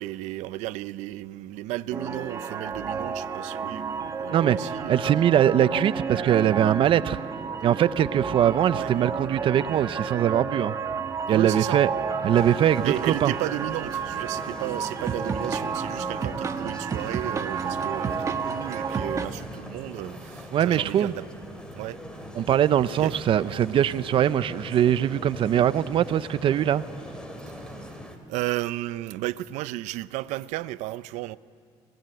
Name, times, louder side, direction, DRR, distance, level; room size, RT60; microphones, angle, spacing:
voice 1, 0.0-4.9 8.7-8.9 11.3-11.8 12.8-21.2 21.7-22.0 23.0-23.1 27.5-28.0 28.3-31.4, right 16 dB, 85° right, 0.6 m, -33 dB
sound 1, 1.9-19.3, right 5 dB, 25° right, 1.2 m, -31 dB
voice 2, 4.9-7.2 7.6-10.7 11.3-11.9 12.2-13.3 20.5-21.1 22.4-26.8, right 10 dB, 50° right, 0.6 m, -22 dB
sound 2, 12.3-28.2, equal, 5° left, 2.6 m, -41 dB
24.0 x 20.0 x 8.9 m
cardioid pair, 140°, 12 cm